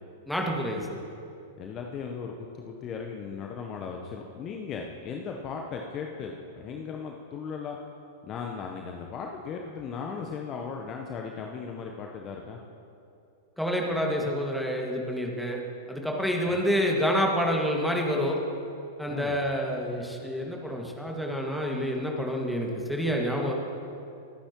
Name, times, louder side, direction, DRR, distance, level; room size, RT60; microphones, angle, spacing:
voice 1, 0.3-1.0 13.6-15.6 15.9-18.4 19.0-23.5, equal, ahead, -1 dB, 2.0 m, -28 dB
voice 2, 1.6-7.8 8.2-12.6 16.5-16.6 19.1-19.4 23.4-23.5, left 6 dB, 30° left, 2 dB, 1.0 m, -37 dB
28.0 x 10.0 x 3.0 m, 2.6 s
figure-of-eight pair, 95°, 0 cm